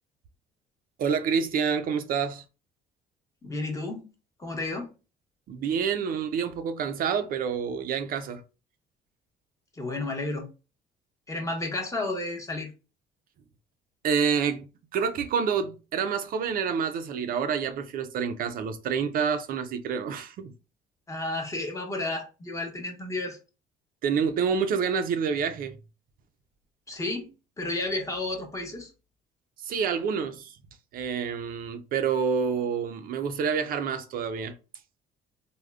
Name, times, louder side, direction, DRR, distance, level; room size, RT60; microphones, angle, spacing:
voice 1, 1.0-2.4 5.5-8.4 14.0-14.7 14.9-20.5 24.0-25.7 29.6-30.6 30.9-34.5, right 6 dB, 60° right, 0.4 m, -28 dB
voice 2, 3.4-4.1 4.4-4.9 9.7-10.5 11.3-12.7 21.1-23.4 26.9-27.3 27.6-28.9, left 2 dB, 20° left, 0.8 m, -32 dB
3.4 x 2.1 x 2.3 m
cardioid pair, 110°, 17 cm